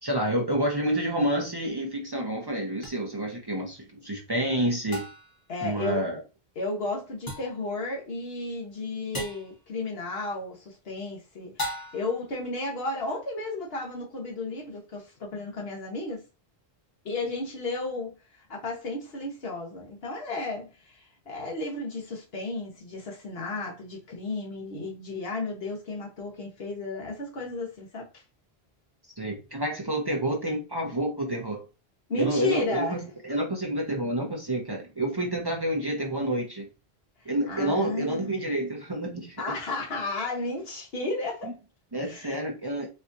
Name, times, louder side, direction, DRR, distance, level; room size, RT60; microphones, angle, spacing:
voice 1, 0.0-5.0 5.6-6.2 29.2-31.6 32.2-36.7 37.3-39.4 41.4-41.5 41.9-42.9, right 1 dB, 30° right, 0.6 m, -29 dB
sound 1, 2.8-2.9 4.9-5.4 7.3-7.6 9.1-9.5 11.6-12.2, equal, 20° left, 1.0 m, -36 dB
voice 2, 5.5-6.1 6.6-16.2 17.0-28.2 32.1-33.0 37.2-38.3 39.4-41.5 42.0-42.4, left 2 dB, 75° left, 1.1 m, -33 dB
4.3 x 2.4 x 2.5 m
omnidirectional pair, 1.0 m